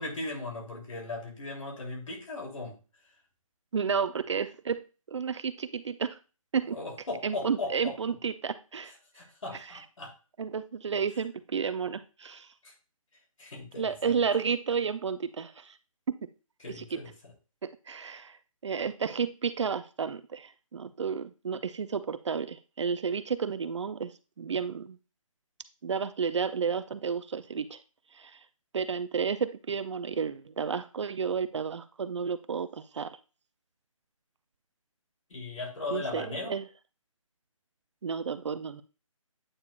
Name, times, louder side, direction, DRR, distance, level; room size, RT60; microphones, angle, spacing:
voice 1, 0.0-2.8 6.7-7.9 9.1-10.1 12.6-12.7 13.4-14.1 16.6-17.1 35.3-36.5, left 2 dB, 65° left, 0 dB, 3.0 m, -37 dB
voice 2, 3.7-4.8 5.1-6.2 6.5-6.8 7.2-8.9 10.4-12.5 13.8-15.8 16.1-16.3 16.8-17.0 17.6-18.4 18.6-25.0 25.8-27.8 28.1-28.4 28.7-33.2 35.9-36.7 38.0-38.8, right 6 dB, 55° right, 12 dB, 0.5 m, -32 dB
8.6 x 4.7 x 2.4 m, 0.32 s
hypercardioid pair, 160°, 18 cm